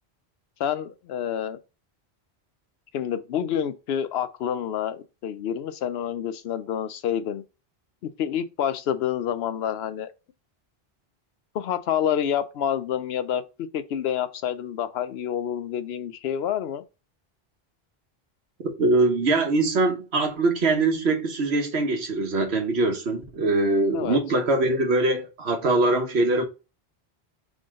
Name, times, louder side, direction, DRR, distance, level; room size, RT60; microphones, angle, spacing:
voice 1, 0.6-1.6 2.9-7.4 8.0-10.1 11.5-13.4 13.7-16.8 23.9-24.2, left 9 dB, 80° left, 0.8 m, -28 dB
voice 2, 18.8-26.4, right 2 dB, 85° right, 1.3 m, -22 dB
3.8 x 3.7 x 3.6 m
omnidirectional pair, 1.1 m